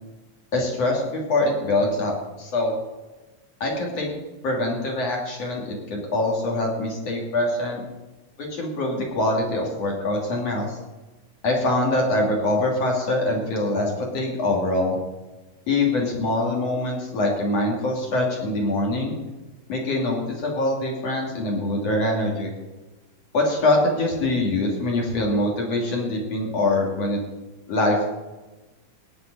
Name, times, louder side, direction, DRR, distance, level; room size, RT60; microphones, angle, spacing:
voice 1, 0.5-2.7 3.6-4.1 4.4-7.8 8.4-10.8 11.4-15.0 15.7-19.2 19.7-22.5 23.3-27.2 27.7-28.1, left 2 dB, 50° left, -1 dB, 3.9 m, -24 dB
17.5 x 9.9 x 5.2 m, 1.1 s
omnidirectional pair, 3.9 m